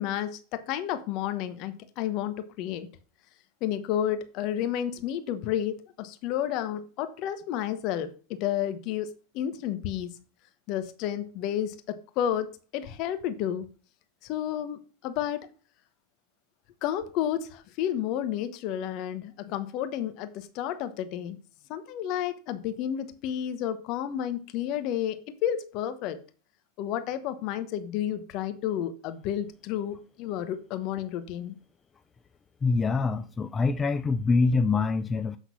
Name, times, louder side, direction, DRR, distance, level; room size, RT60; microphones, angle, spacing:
voice 1, 0.0-2.9 3.6-10.2 10.7-13.7 14.2-15.5 16.8-21.4 21.7-26.2 26.8-31.6, left 10 dB, 50° left, 1.1 m, -31 dB
voice 2, 32.6-35.4, left 4 dB, 20° left, 0.4 m, -25 dB
8.3 x 3.9 x 6.1 m
hypercardioid pair, 110°, 0 cm